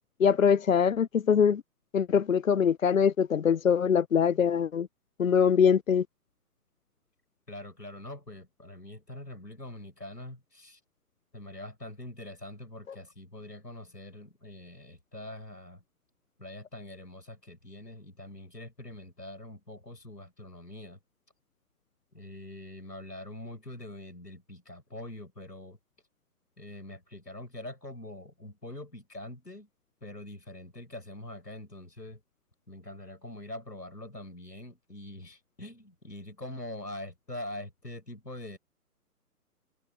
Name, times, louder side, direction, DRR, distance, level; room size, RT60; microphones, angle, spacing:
voice 1, 0.2-1.6 1.9-4.9 5.2-6.1, left 7 dB, 55° left, 0.6 m, -23 dB
voice 2, 7.5-10.8 11.3-15.8 16.4-21.0 22.1-25.8 26.6-29.7 30.0-32.2 32.7-38.6, left 1 dB, 85° left, 7.2 m, -44 dB
figure-of-eight pair, 135°, 48 cm